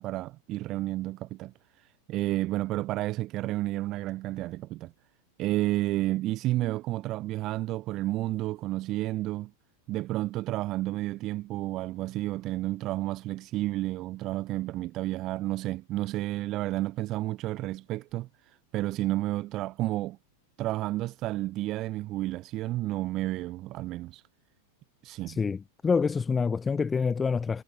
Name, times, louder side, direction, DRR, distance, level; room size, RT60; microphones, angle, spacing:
voice 1, 0.0-4.9 5.4-9.5 9.9-20.2 20.6-24.2 25.0-25.4, right 16 dB, 35° right, 0.8 m, -31 dB
voice 2, 25.3-27.6, left 5 dB, 15° left, 0.4 m, -27 dB
figure-of-eight pair, 90°, 0 cm